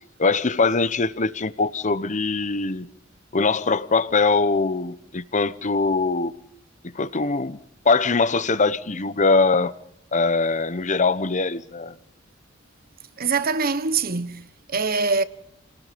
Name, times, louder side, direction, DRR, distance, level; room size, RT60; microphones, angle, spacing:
voice 1, 0.2-2.9 3.3-6.3 6.9-7.6 7.8-9.7 10.1-11.9, left 4 dB, 40° left, 1.0 m, -22 dB
voice 2, 13.2-15.2, right 4 dB, 50° right, 1.1 m, -24 dB
29.0 x 18.5 x 5.2 m
head